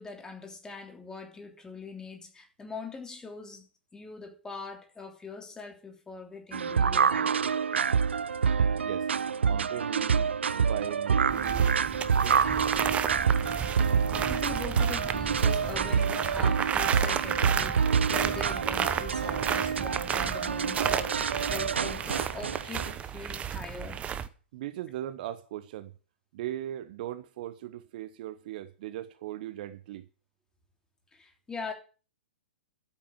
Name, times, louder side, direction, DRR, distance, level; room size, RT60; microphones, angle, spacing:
voice 1, 0.0-3.6 3.9-7.3 14.1-24.1 31.1-31.7, left 4 dB, 10° left, 3.3 m, -42 dB
sound 1, 6.5-22.9, right 6 dB, 75° right, 0.6 m, -27 dB
voice 2, 9.4-11.8 12.2-12.4 24.5-25.9 26.3-30.1, right 13 dB, 50° right, 1.1 m, -38 dB
sound 2, 11.3-24.3, right 8 dB, 20° right, 0.9 m, -33 dB
12.5 x 8.8 x 7.0 m
figure-of-eight pair, 115°, 6 cm